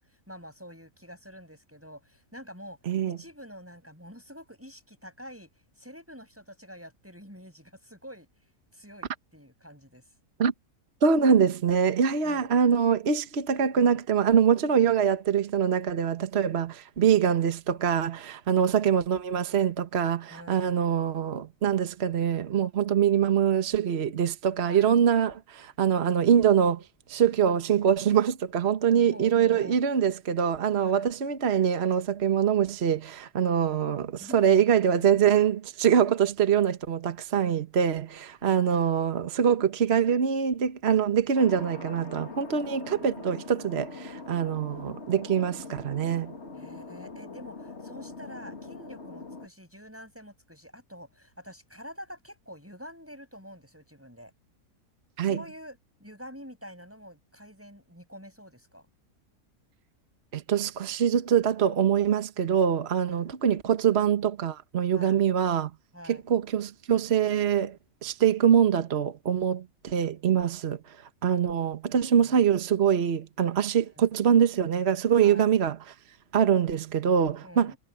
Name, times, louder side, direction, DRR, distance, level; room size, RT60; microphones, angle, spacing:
voice 1, 0.0-2.8 3.0-5.5 5.8-8.3 8.7-10.1 12.2-12.5 18.5-18.9 20.3-20.8 24.6-24.9 28.9-29.8 30.9-31.1 33.9-35.3 38.4-38.9 46.5-54.3 55.2-58.9 63.1-63.3 64.9-65.3 65.9-66.2 72.1-72.4 74.0-74.1 75.2-75.5 77.4-77.8, equal, 10° right, 6.7 m, -47 dB
voice 2, 2.9-3.2 10.4-10.5 11.0-26.8 27.1-46.3 55.2-55.4 60.3-65.7 66.1-67.8 68.0-70.8 71.2-75.8 76.3-77.7, right 8 dB, 50° right, 1.3 m, -24 dB
Thunder, 41.3-49.5, left 3 dB, 45° left, 2.6 m, -42 dB
omnidirectional pair, 1.6 m